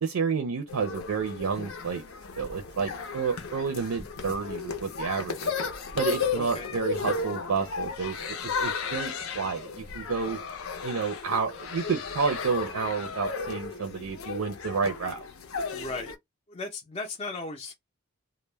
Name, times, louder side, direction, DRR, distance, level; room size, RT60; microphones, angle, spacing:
voice 1, 0.0-2.0 2.4-5.5 6.0-10.4 10.8-15.2, right 5 dB, 80° right, 0.5 m, -30 dB
sound 1, 0.7-16.2, left 5 dB, 70° left, 0.6 m, -34 dB
voice 2, 6.3-6.7 15.7-16.1 16.5-17.7, left 3 dB, 25° left, 0.4 m, -36 dB
2.2 x 2.0 x 3.2 m
head